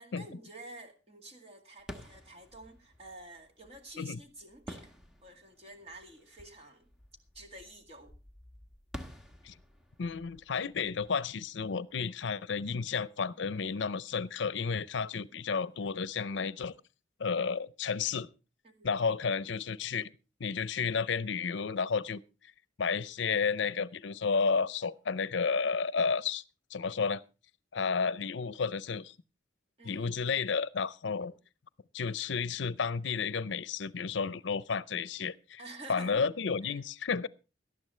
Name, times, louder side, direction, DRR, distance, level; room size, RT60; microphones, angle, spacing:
voice 1, 0.0-6.9 7.3-8.1 18.6-18.9 29.8-30.2 31.1-31.4 35.6-36.3 36.6-36.8, right 2 dB, 30° right, 2.1 m, -50 dB
sound 1, 1.8-12.4, equal, 5° right, 1.2 m, -51 dB
voice 2, 10.0-16.7 17.2-18.3 18.8-20.1 20.4-22.2 22.8-26.4 26.7-27.2 27.7-29.2 29.8-31.3 31.9-35.6 35.9-37.3, left 5 dB, 75° left, 0.6 m, -32 dB
18.5 x 12.0 x 3.2 m
head